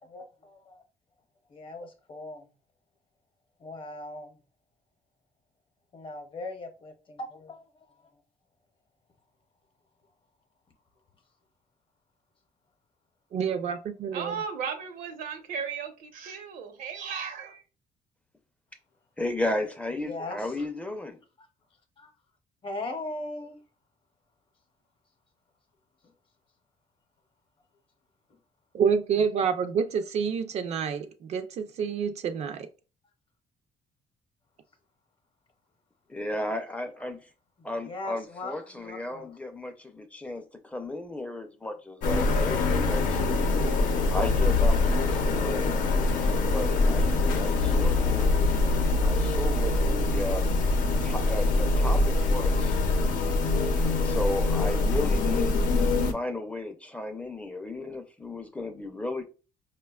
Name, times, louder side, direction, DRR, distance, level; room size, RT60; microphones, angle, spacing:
voice 1, 0.1-0.8 1.5-2.5 3.6-4.4 5.9-7.9 20.0-20.4 21.4-21.5 22.0-22.1 22.6-23.6 37.6-39.3, left 2 dB, 40° left, 0.7 m, -39 dB
voice 2, 13.3-14.4 28.7-32.7, right 6 dB, 55° right, 0.4 m, -28 dB
voice 3, 14.1-17.6, right 6 dB, 80° right, 0.8 m, -35 dB
voice 4, 19.2-21.2 36.1-37.3 37.6-43.2 44.1-45.8 46.4-48.3 49.0-50.5 51.0-52.8 53.6-55.7 56.0-59.3, left 1 dB, 10° left, 0.4 m, -34 dB
sound 1, 42.0-56.1, left 2 dB, 80° left, 0.6 m, -24 dB
4.7 x 2.2 x 2.3 m
cardioid pair, 130°, 14 cm